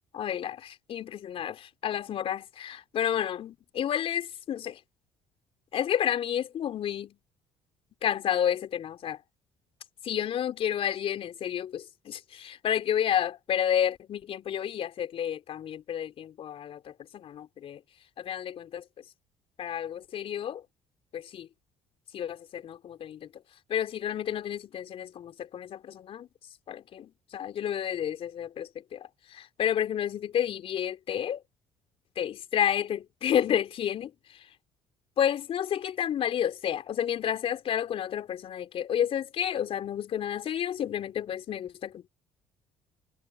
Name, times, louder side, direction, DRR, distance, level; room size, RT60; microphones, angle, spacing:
voice 1, 0.1-4.8 5.7-7.2 8.0-9.2 10.0-17.8 18.2-18.8 19.6-20.6 21.1-21.5 22.1-23.3 23.7-26.3 26.7-31.4 32.2-34.1 35.2-42.1, left 9 dB, 55° left, 3.8 m, -30 dB
hypercardioid pair, 60°, 12 cm